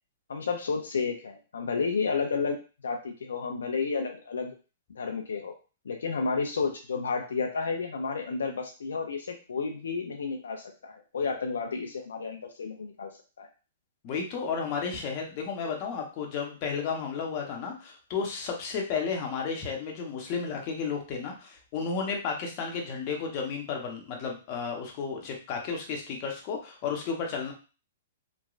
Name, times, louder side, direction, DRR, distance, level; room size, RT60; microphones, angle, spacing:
voice 1, 0.3-2.6 2.8-4.5 5.0-5.5 5.9-13.1 13.4-13.5, left 4 dB, 85° left, 3 dB, 0.4 m, -31 dB
voice 2, 14.0-27.5, left 5 dB, 40° left, 1 dB, 0.8 m, -33 dB
3.0 x 2.2 x 2.4 m, 0.34 s
hypercardioid pair, 135°, 0 cm